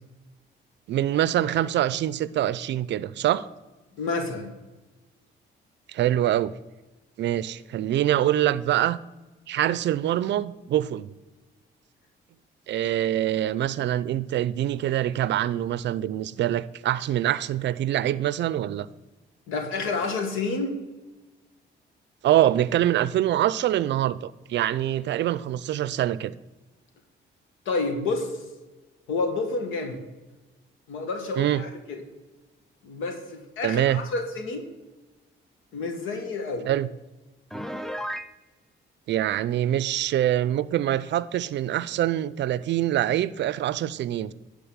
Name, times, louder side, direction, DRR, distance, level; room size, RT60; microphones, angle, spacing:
voice 1, 0.9-3.5 5.9-6.5 7.2-9.0 9.5-11.1 12.7-18.9 22.2-26.3 31.4-31.6 33.6-34.0 36.7-36.9 39.1-44.3, right 12 dB, 65° right, 0.5 m, -24 dB
voice 2, 3.9-4.5 19.5-20.8 27.6-28.4 29.1-30.0 30.9-32.0 32.8-34.6 35.7-36.7, left 3 dB, 90° left, 1.4 m, -29 dB
Piano, 37.5-38.3, equal, ahead, 0.4 m, -33 dB
10.5 x 3.9 x 7.3 m
cardioid pair, 90°, 20 cm